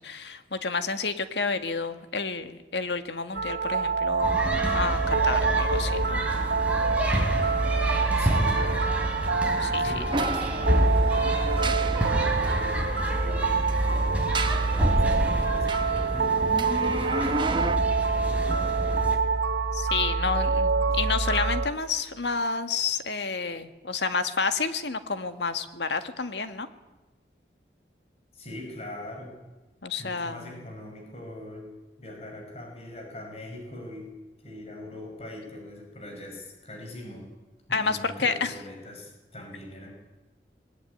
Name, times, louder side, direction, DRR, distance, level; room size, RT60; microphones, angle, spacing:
voice 1, 0.0-4.4 4.7-6.2 9.6-9.9 19.7-26.7 29.8-30.6 37.7-38.5, left 4 dB, 85° left, 9 dB, 1.7 m, -30 dB
sound 1, 3.3-21.7, right 4 dB, 80° right, 1.8 m, -26 dB
sound 2, 4.2-19.2, equal, 10° right, 3.2 m, -29 dB
voice 2, 8.2-9.0 9.8-13.4 13.8-14.1 14.4-19.1 20.1-21.0 28.3-29.4 30.0-31.7 32.0-34.1 34.4-37.3 37.7-39.9, left 1 dB, 35° left, 2 dB, 5.1 m, -42 dB
sound 3, 10.1-12.6 13.6-14.9 15.4-17.8, right 2 dB, 25° right, 1.1 m, -33 dB
21.0 x 19.5 x 9.5 m, 1.1 s
head